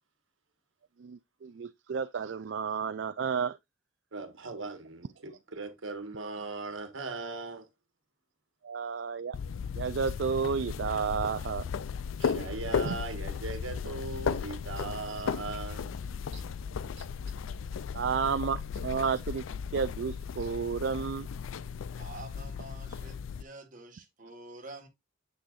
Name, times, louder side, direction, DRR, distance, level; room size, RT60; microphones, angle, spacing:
voice 1, 1.0-3.6 8.6-9.4 9.7-11.7 12.9-13.0 17.0-17.1 17.9-19.4 19.7-21.3, right 6 dB, 60° right, 0.4 m, -31 dB
voice 2, 4.1-7.7 12.2-16.0 16.3-16.4, right 3 dB, 80° right, 1.4 m, -39 dB
sound 1, 9.3-23.4, left 6 dB, 80° left, 0.4 m, -35 dB
voice 3, 21.9-24.9, right 2 dB, 40° right, 1.6 m, -47 dB
7.8 x 6.6 x 2.5 m
head